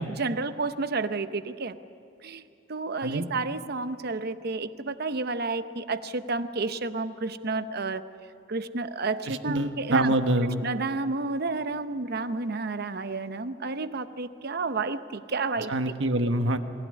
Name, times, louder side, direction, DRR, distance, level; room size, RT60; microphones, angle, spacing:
voice 1, 0.0-1.8 2.2-2.4 2.7-8.0 8.5-10.1 10.6-15.7, right 3 dB, 55° right, 11 dB, 0.8 m, -30 dB
voice 2, 9.3-10.6 15.7-16.6, right 2 dB, 75° right, 7 dB, 1.3 m, -26 dB
23.0 x 16.0 x 9.8 m, 2.5 s
head